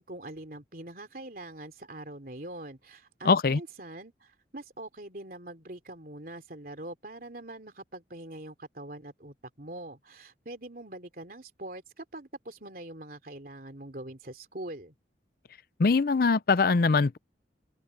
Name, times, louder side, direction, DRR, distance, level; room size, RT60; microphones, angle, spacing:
voice 1, 0.0-14.9, right 1 dB, 55° right, 3.3 m, -43 dB
voice 2, 3.2-3.6 15.8-17.2, left 4 dB, 55° left, 0.5 m, -22 dB
open air
head